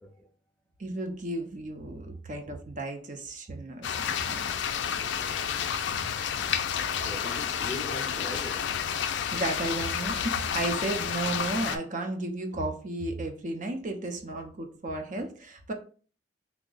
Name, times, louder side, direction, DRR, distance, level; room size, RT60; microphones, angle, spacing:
voice 1, 0.8-4.5 9.3-15.7, right 2 dB, 45° right, 0.6 m, -34 dB
sound 1, 3.8-11.8, left 8 dB, 75° left, 0.4 m, -30 dB
voice 2, 4.9-5.3 7.0-8.8, left 1 dB, 5° left, 0.5 m, -41 dB
3.5 x 2.1 x 3.8 m
head